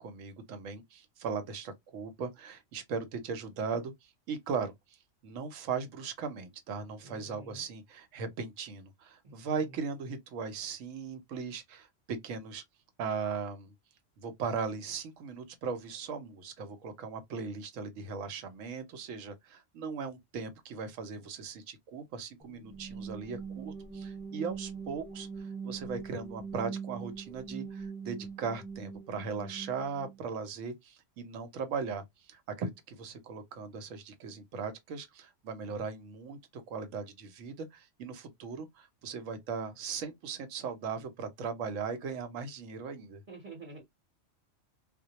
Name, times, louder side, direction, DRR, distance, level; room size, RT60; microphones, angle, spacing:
voice 1, 0.0-5.0 5.2-12.6 13.0-13.7 14.2-43.2, right 5 dB, 75° right, 1.0 m, -38 dB
voice 2, 7.0-7.6 9.2-9.4 43.3-43.8, right 3 dB, 40° right, 1.0 m, -48 dB
sound 1, 22.4-30.2, right 5 dB, 5° right, 0.7 m, -42 dB
2.2 x 2.1 x 2.7 m
omnidirectional pair, 1.3 m